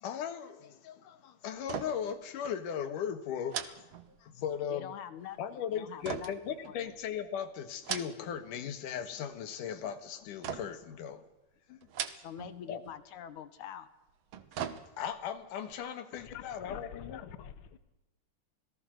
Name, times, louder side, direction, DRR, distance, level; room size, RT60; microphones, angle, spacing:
voice 1, 0.0-3.8 4.2-4.9 5.4-11.2 11.7-11.8 12.7-12.8 15.0-17.4, left 8 dB, 90° left, 10 dB, 3.1 m, -38 dB
sound 1, 1.6-2.2 2.4-2.6 3.5-4.6 6.0-7.2 7.7-8.5 8.8-9.3 10.4-10.9 11.8-12.6 12.9-13.0 14.1-15.3 15.7-15.8, right 9 dB, 60° right, 2.1 m, -40 dB
voice 2, 4.7-6.9 12.2-13.9, left 9 dB, 70° left, 13 dB, 2.8 m, -45 dB
voice 3, 16.3-17.8, left 9 dB, 50° left, 11 dB, 1.9 m, -46 dB
27.5 x 18.5 x 6.4 m, 0.97 s
omnidirectional pair, 3.6 m